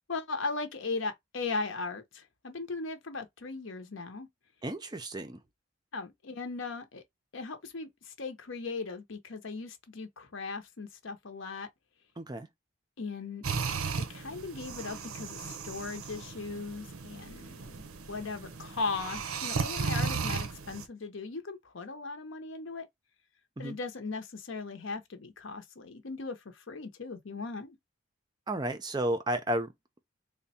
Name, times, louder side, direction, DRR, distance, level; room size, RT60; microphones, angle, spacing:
voice 1, 0.1-4.3 5.9-7.0 7.3-11.7 13.0-13.4 14.0-22.9 23.6-27.8, left 3 dB, 65° left, 0.7 m, -38 dB
voice 2, 4.6-5.4 12.2-12.5 23.6-23.8 28.5-29.7, right 1 dB, 20° right, 0.4 m, -32 dB
sound 1, 13.4-20.9, right 5 dB, 90° right, 0.7 m, -35 dB
3.4 x 2.2 x 4.1 m
head